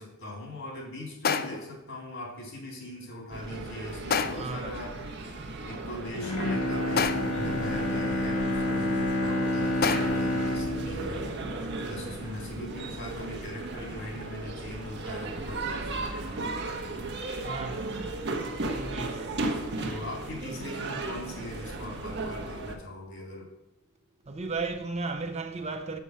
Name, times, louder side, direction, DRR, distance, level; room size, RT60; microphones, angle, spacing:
voice 1, 0.0-5.1 5.6-11.4 11.8-17.1 19.8-23.5, left 1 dB, 60° left, 3.6 m, -41 dB
sound 1, 1.2-1.8 4.1-4.6 7.0-7.5 9.8-10.3, left 6 dB, 45° left, 0.5 m, -28 dB
sound 2, 3.3-22.8, right 2 dB, 50° right, 1.1 m, -36 dB
voice 2, 4.3-4.8 17.4-18.1 18.7-19.4 20.4-20.6 24.3-26.0, right 3 dB, 30° right, 0.6 m, -35 dB
Bowed string instrument, 6.2-12.4 12.8-12.9, left 1 dB, 85° left, 1.2 m, -29 dB
7.1 x 6.9 x 6.1 m
head